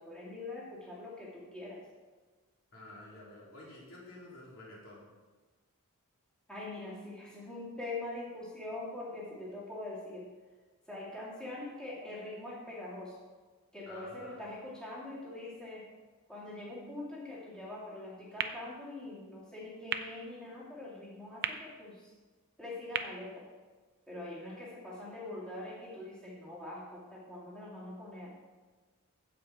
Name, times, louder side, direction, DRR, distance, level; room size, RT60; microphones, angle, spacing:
voice 1, 0.0-1.8 6.5-10.3 10.9-13.2 13.7-15.9 16.3-22.1 22.6-23.5 24.1-28.3, left 2 dB, 5° left, -8 dB, 2.4 m, -43 dB
voice 2, 2.7-5.0 13.9-14.4, left 2 dB, 65° left, -5 dB, 3.3 m, -50 dB
sound 1, 18.4-24.3, right 8 dB, 50° right, 0.5 m, -42 dB
15.0 x 5.1 x 4.3 m, 1.4 s
head